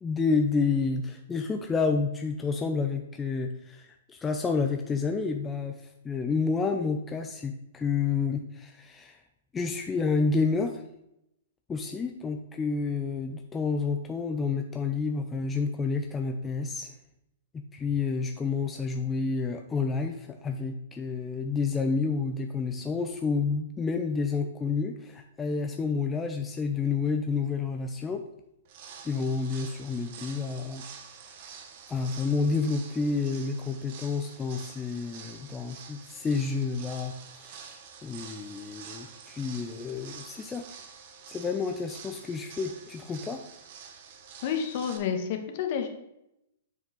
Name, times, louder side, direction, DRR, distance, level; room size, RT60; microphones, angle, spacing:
voice 1, 0.0-9.2 9.5-10.8 11.7-16.9 17.7-28.2 29.0-30.8 31.9-40.7 41.3-43.4, left 4 dB, 15° left, 4 dB, 0.5 m, -29 dB
sound 1, 28.6-45.0, right 6 dB, 50° right, 1.0 m, -47 dB
voice 2, 44.4-45.9, left 7 dB, 50° left, 5 dB, 1.2 m, -29 dB
7.1 x 5.4 x 3.8 m, 0.83 s
hypercardioid pair, 130°, 0 cm